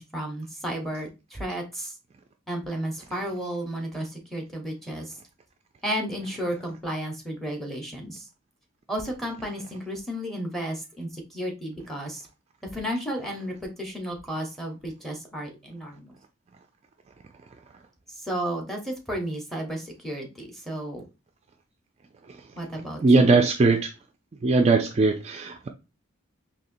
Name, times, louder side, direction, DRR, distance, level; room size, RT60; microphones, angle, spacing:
voice 1, 0.0-1.9 2.5-5.2 5.8-8.2 8.9-12.3 12.6-16.2 18.1-21.0 22.6-23.5, equal, ahead, 0.9 m, -33 dB
voice 2, 23.0-23.9 24.4-25.7, right 3 dB, 30° right, 0.3 m, -20 dB
4.2 x 2.8 x 2.5 m
head